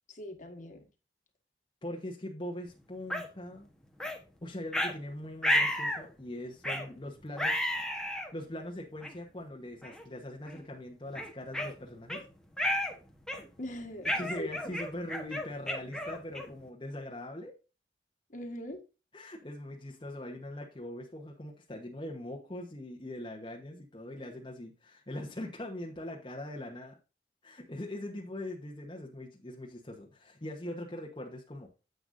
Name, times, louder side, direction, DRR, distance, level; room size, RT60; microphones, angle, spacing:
voice 1, 0.1-0.9 13.6-14.5 18.3-18.8, left 1 dB, 45° left, 5 dB, 1.5 m, -41 dB
voice 2, 1.8-3.7 4.4-7.7 8.3-12.2 14.1-17.5 19.1-27.0 27.4-31.7, left 1 dB, 25° left, -1 dB, 1.1 m, -41 dB
sound 1, 3.1-3.3 4.0-4.2 4.7-4.9 5.4-6.0 6.6-6.9 7.4-8.3 9.0-9.1 9.8-10.0 10.5-10.6 11.2-12.2 12.6-12.9 13.3-13.6 14.1-16.6, left 1 dB, 5° left, 1.2 m, -32 dB
9.9 x 8.0 x 2.6 m, 0.31 s
head